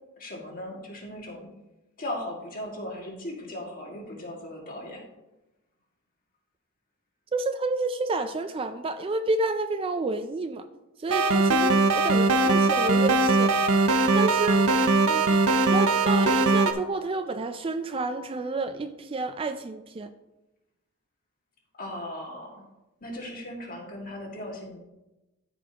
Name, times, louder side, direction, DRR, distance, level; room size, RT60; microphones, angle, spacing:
voice 1, 0.2-1.5 2.0-5.1 21.8-22.7 23.0-24.8, left 1 dB, 40° left, -1 dB, 1.9 m, -37 dB
voice 2, 7.3-10.7 11.0-13.5 14.1-14.6 15.0-15.4 15.7-20.1, right 2 dB, 25° right, 10 dB, 0.3 m, -30 dB
sound 1, 11.1-16.7, right 3 dB, 85° right, 0.6 m, -21 dB
13.5 x 5.1 x 2.9 m, 0.99 s
head